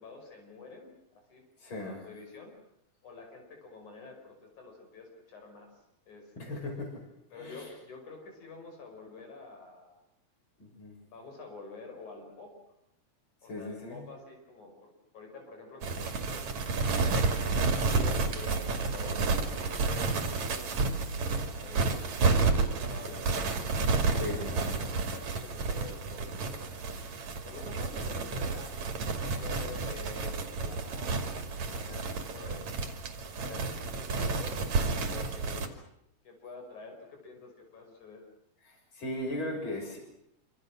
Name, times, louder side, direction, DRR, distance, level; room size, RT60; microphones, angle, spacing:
voice 1, 0.0-1.4 1.8-2.5 3.0-5.8 6.1-6.7 7.3-10.0 11.1-12.5 13.4-17.1 17.6-20.8 21.1-23.6 24.2-26.9 27.4-32.7 33.4-35.6 36.3-38.3, left 3 dB, 85° left, 3 dB, 7.0 m, -48 dB
voice 2, 1.6-2.0 6.4-6.9 7.3-7.7 10.6-11.0 13.4-14.0 24.1-24.8 38.6-40.0, left 1 dB, 40° left, 3 dB, 7.2 m, -38 dB
sound 1, 15.8-35.7, right 4 dB, 70° right, 3.9 m, -31 dB
27.0 x 26.5 x 6.4 m, 0.79 s
omnidirectional pair, 3.3 m